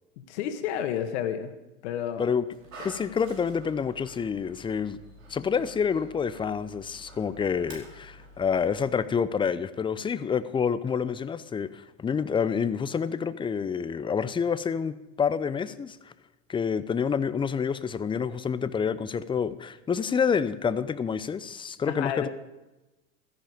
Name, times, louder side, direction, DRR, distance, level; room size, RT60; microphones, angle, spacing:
voice 1, 0.2-1.5 1.8-2.3 21.8-22.3, left 9 dB, 60° left, 7 dB, 2.0 m, -31 dB
Dog, 2.5-8.9, right 1 dB, 75° right, 5.0 m, -49 dB
voice 2, 2.8-5.0 5.3-16.1 16.5-22.3, left 6 dB, 10° left, 15 dB, 0.6 m, -28 dB
16.0 x 14.0 x 5.1 m, 1.0 s
hypercardioid pair, 95°, 40 cm